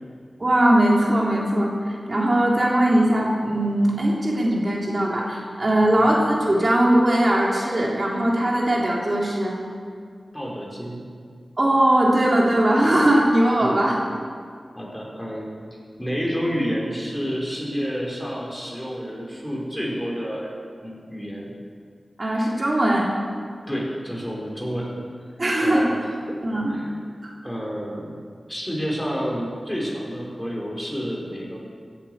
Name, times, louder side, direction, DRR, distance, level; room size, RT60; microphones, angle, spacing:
voice 1, 0.4-1.7 2.1-9.6 11.6-14.0 22.2-23.1 25.4-25.9 26.4-26.7 27.2-27.3, right 1 dB, 45° right, -3 dB, 3.2 m, -20 dB
voice 2, 5.8-6.1 10.3-11.1 13.6-13.8 14.7-15.5 16.0-20.5 20.8-21.5 23.7-25.0 25.6-25.9 26.3-26.4 26.7-27.0 27.4-28.2 28.5-31.6, equal, 10° left, -3 dB, 5.1 m, -29 dB
16.5 x 10.5 x 8.1 m, 2.1 s
wide cardioid pair, 50°, 0 cm